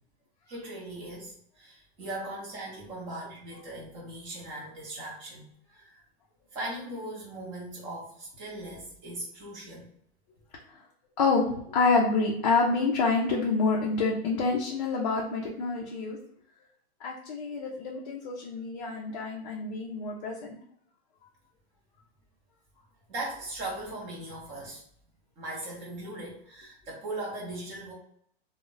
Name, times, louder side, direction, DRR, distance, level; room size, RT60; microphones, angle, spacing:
voice 1, 0.5-6.0 6.5-9.9 23.1-24.8 25.4-27.9, right 1 dB, 20° right, -3 dB, 0.5 m, -39 dB
voice 2, 11.2-16.2 17.0-20.6, left 4 dB, 40° left, -2 dB, 0.4 m, -27 dB
2.1 x 2.1 x 3.6 m, 0.67 s
supercardioid pair, 170°, 33 cm